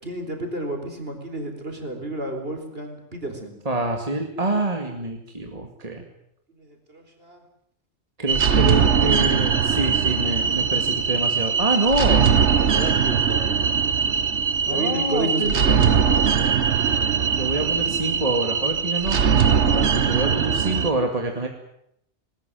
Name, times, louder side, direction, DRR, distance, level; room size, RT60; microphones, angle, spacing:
voice 1, 0.0-3.6 6.6-7.4 12.7-13.6 14.7-16.0, right 1 dB, 55° right, 5 dB, 4.4 m, -31 dB
voice 2, 3.7-6.0 8.2-12.3 14.7-15.5 17.4-19.2 19.6-21.5, right 2 dB, 30° right, 3 dB, 2.3 m, -26 dB
sound 1, 8.3-20.9, right 6 dB, 80° right, 1.4 m, -21 dB
20.0 x 20.0 x 9.2 m, 0.75 s
omnidirectional pair, 1.2 m